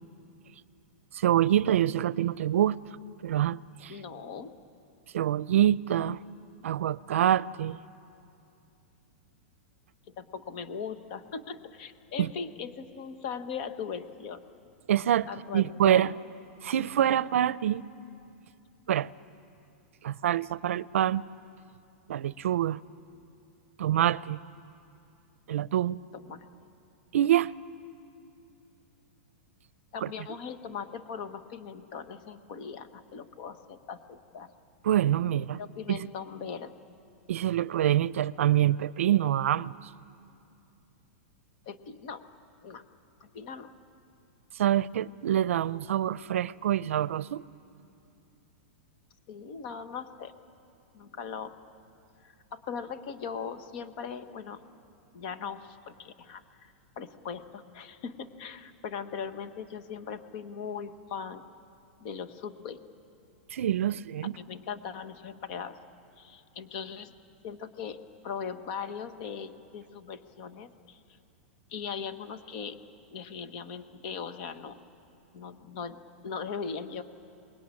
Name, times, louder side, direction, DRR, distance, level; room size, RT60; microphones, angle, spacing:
voice 1, 1.1-2.8 3.2-3.9 5.1-6.2 6.6-7.8 12.2-12.3 14.9-15.3 15.5-16.1 16.6-17.9 18.9-19.1 20.0-21.2 22.1-22.8 23.8-24.4 25.5-26.0 27.1-27.5 30.0-30.1 34.8-35.6 35.9-36.0 37.3-39.9 44.6-47.4 63.5-64.4, right 11 dB, 85° right, 0.5 m, -26 dB
voice 2, 3.9-4.5 10.2-14.4 15.3-16.1 26.1-26.5 29.9-34.5 35.6-36.7 41.7-42.2 42.6-42.8 43.2-43.7 49.3-50.3 50.9-51.5 52.2-54.6 55.1-61.4 62.0-62.8 64.2-65.8 66.2-67.1 67.4-71.0 71.7-72.8 73.1-74.8 75.3-77.0, left 6 dB, 40° left, 1.2 m, -39 dB
24.5 x 21.0 x 9.8 m
supercardioid pair, 170°, 7 cm